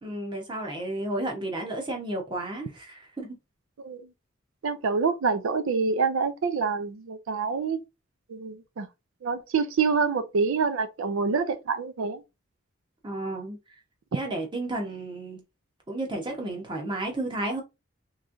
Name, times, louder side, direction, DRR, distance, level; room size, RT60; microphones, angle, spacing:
voice 1, 0.0-3.3 13.0-13.6 14.1-15.4 15.9-17.6, right 1 dB, 25° right, 1.0 m, -32 dB
voice 2, 4.6-7.8 8.3-8.9 9.2-12.2, right 5 dB, 85° right, 0.5 m, -26 dB
3.5 x 3.1 x 2.5 m
head